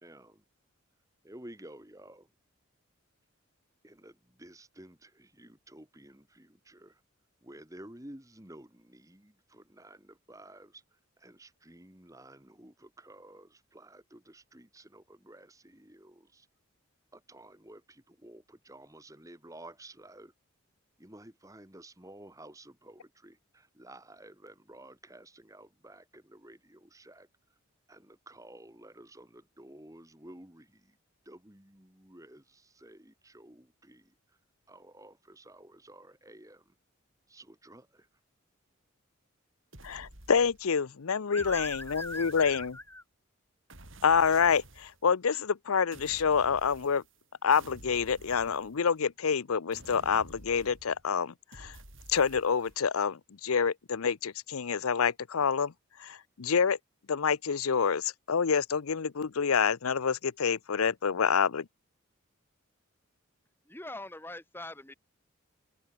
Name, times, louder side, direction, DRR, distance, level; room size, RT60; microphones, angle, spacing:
voice 1, 0.0-0.4 1.2-2.3 3.8-7.0 7.4-10.8 11.2-16.5 17.1-20.3 21.0-27.3 27.9-31.0 31.3-34.1 34.7-36.7 37.3-38.1, right 1 dB, 15° right, 2.3 m, -52 dB
sound 1, 39.7-40.8 41.4-43.0 43.7-45.0 45.9-47.2 47.5-49.1 49.7-51.1 51.5-52.8, right 1 dB, 65° right, 6.4 m, -52 dB
voice 2, 39.8-42.8 44.0-47.0 47.4-51.8 52.1-55.7 56.0-56.8 57.1-61.7, left 6 dB, 85° left, 0.7 m, -27 dB
voice 3, 41.3-43.0 63.7-64.9, left 2 dB, 10° left, 1.4 m, -41 dB
head